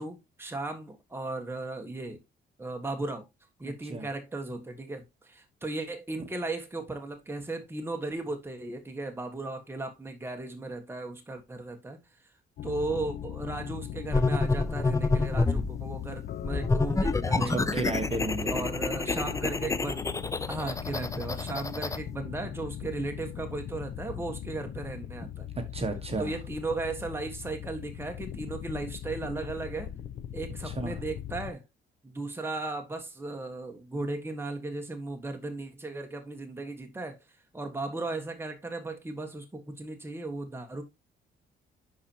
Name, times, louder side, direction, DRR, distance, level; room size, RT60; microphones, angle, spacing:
voice 1, 0.0-2.2 2.6-3.3 3.6-12.0 12.6-17.9 18.4-20.1 20.5-25.5 26.2-29.9 30.3-31.6 32.0-37.2 37.5-40.8, right 2 dB, 10° right, 1.4 m, -36 dB
sound 1, 12.6-31.5, left 10 dB, 60° left, 0.7 m, -39 dB
sound 2, 14.1-15.7 16.4-22.0, left 3 dB, 15° left, 0.5 m, -28 dB
voice 2, 17.4-18.6 25.6-26.4 30.6-31.0, right 3 dB, 30° right, 1.3 m, -33 dB
11.0 x 4.3 x 2.9 m
cardioid pair, 90°, 20 cm